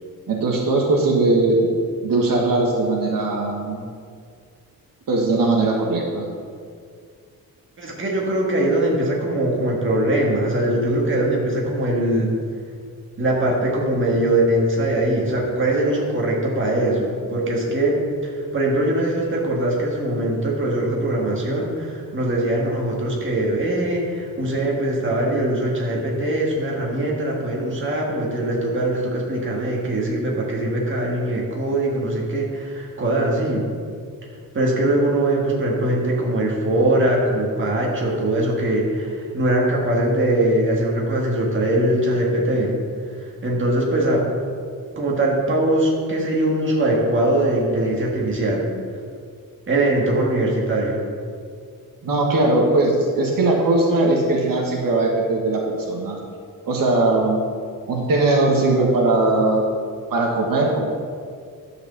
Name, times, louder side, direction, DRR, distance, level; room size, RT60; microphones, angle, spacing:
voice 1, 0.3-1.7 2.0-3.8 5.1-6.3 52.0-56.2 56.6-57.4 57.9-59.6 60.1-60.9, right 2 dB, 70° right, -1 dB, 1.5 m, -19 dB
voice 2, 7.8-12.3 13.2-33.7 34.5-42.8 43.2-44.2 45.0-48.7 49.7-51.0, right 1 dB, 35° right, -2 dB, 1.8 m, -21 dB
11.5 x 5.1 x 6.8 m, 2.2 s
wide cardioid pair, 175°, 35 cm